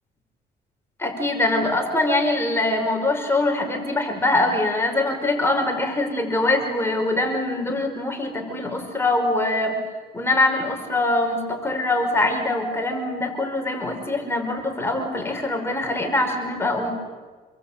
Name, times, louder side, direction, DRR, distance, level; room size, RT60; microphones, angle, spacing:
voice 1, 1.0-9.8 10.1-16.9, left 2 dB, 15° left, 3 dB, 5.3 m, -23 dB
27.5 x 22.5 x 8.9 m, 1.4 s
cardioid pair, 110°, 17 cm